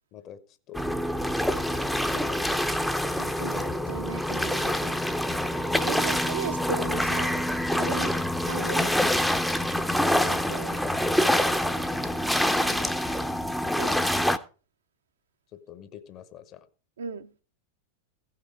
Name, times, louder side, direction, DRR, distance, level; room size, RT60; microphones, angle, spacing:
sound 1, 0.7-14.4, left 1 dB, ahead, 0.6 m, -26 dB
voice 1, 1.4-2.6 6.0-6.2 12.6-12.9 15.5-16.7, left 10 dB, 35° left, 1.0 m, -44 dB
voice 2, 3.2-5.0 5.8-7.4 7.8-8.1 8.4-9.2 10.2-10.9 13.8-14.1 17.0-17.4, right 6 dB, 65° right, 0.7 m, -37 dB
15.5 x 5.9 x 4.9 m
figure-of-eight pair, 90°, 0 cm